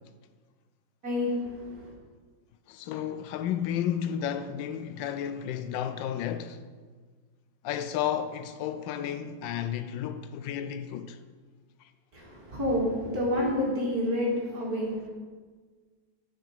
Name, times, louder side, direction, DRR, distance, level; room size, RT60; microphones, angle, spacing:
voice 1, 1.0-1.9 12.1-15.1, left 1 dB, 55° right, 2.7 m, -29 dB
voice 2, 2.7-6.6 7.6-11.2, left 9 dB, 90° left, 1.3 m, -32 dB
10.0 x 6.0 x 5.7 m
omnidirectional pair, 2.0 m